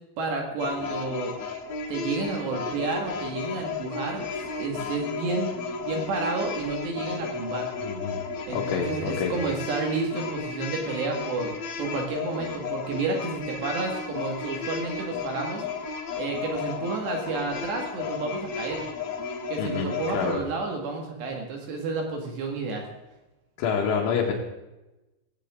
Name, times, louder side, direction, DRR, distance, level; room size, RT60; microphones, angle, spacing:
voice 1, 0.2-1.3 1.9-4.2 4.6-7.7 8.5-15.6 16.2-18.9 19.5-22.9, right 3 dB, 65° right, 1 dB, 4.0 m, -30 dB
sound 1, 0.6-20.4, left 5 dB, 55° left, 2.2 m, -34 dB
voice 2, 7.8-8.2 8.5-9.3 19.6-20.4 23.6-24.3, left 6 dB, 85° left, -3 dB, 4.1 m, -27 dB
17.5 x 17.0 x 3.8 m, 1.0 s
omnidirectional pair, 5.4 m